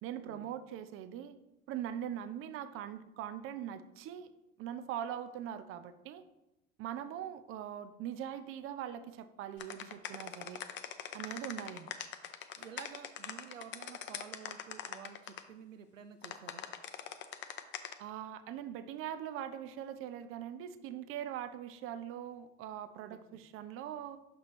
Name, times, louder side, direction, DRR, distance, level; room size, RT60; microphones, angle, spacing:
voice 1, 0.0-1.4 1.7-4.3 4.6-6.2 6.8-10.6 11.1-11.9 18.0-24.2, right 10 dB, 35° right, 12 dB, 0.5 m, -42 dB
sound 1, 9.6-15.4 16.2-17.9, left 10 dB, 30° left, 0.5 m, -42 dB
voice 2, 12.6-16.6 23.1-23.2, right 7 dB, 90° right, 9 dB, 0.5 m, -51 dB
6.1 x 5.9 x 3.0 m, 0.92 s
figure-of-eight pair, 70°, 37 cm